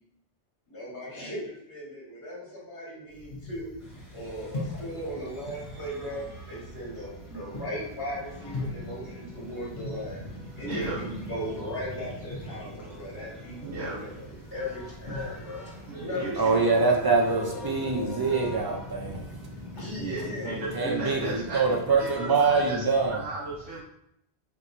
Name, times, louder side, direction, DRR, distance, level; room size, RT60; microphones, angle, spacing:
voice 1, 0.7-3.7 4.1-10.2 10.6-14.1 14.5-15.7 16.0-17.0 17.4-18.6 19.7-20.6, equal, 70° left, -6 dB, 1.7 m, -37 dB
sound 1, 3.1-20.5, left 1 dB, 50° left, 1.1 m, -43 dB
sound 2, 3.8-22.7, left 1 dB, ahead, 0.8 m, -44 dB
voice 2, 10.6-11.0 13.6-14.0 15.9-16.7 20.0-23.8, right 3 dB, 75° right, -8 dB, 1.1 m, -35 dB
voice 3, 16.4-19.2 20.7-23.2, right 4 dB, 35° right, 0 dB, 0.4 m, -24 dB
4.4 x 3.0 x 2.6 m, 0.76 s
omnidirectional pair, 1.1 m